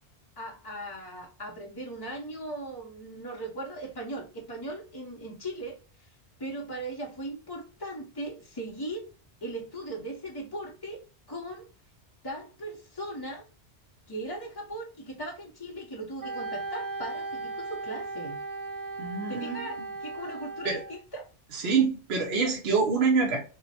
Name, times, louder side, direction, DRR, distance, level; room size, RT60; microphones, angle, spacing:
voice 1, 0.4-6.1 6.4-9.1 9.4-11.0 11.3-11.7 12.2-13.4 14.1-18.4 19.3-21.3, right 1 dB, 25° left, -3 dB, 0.5 m, -38 dB
Wind instrument woodwind instrument, 16.2-21.0, right 3 dB, 35° right, 0.3 m, -37 dB
voice 2, 19.0-19.6 20.6-20.8 21.5-23.4, right 5 dB, 65° right, -1 dB, 1.0 m, -25 dB
4.3 x 2.1 x 2.8 m, 0.35 s
omnidirectional pair, 1.2 m